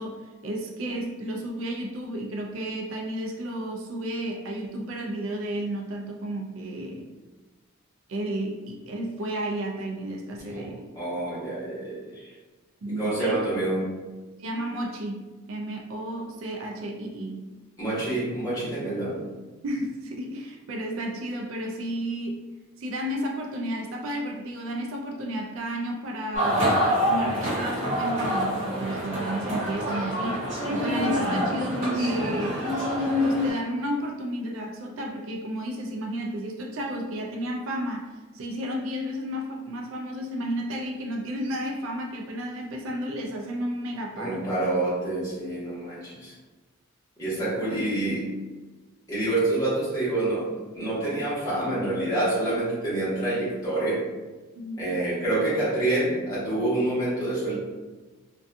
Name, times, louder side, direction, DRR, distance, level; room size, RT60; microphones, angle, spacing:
voice 1, 0.0-7.1 8.1-10.8 12.8-13.4 14.4-17.5 19.6-22.4 22.8-26.8 27.1-32.6 33.2-44.5 54.5-54.9, right 1 dB, 65° right, 1 dB, 0.4 m, -32 dB
voice 2, 10.9-12.3 12.9-13.9 17.8-19.2 44.2-46.3 47.2-48.3 49.1-54.0 54.8-57.5, right 2 dB, 15° left, -11 dB, 1.1 m, -27 dB
sound 1, 26.3-33.5, equal, 35° right, 1.2 m, -26 dB
2.5 x 2.2 x 2.5 m, 1.3 s
head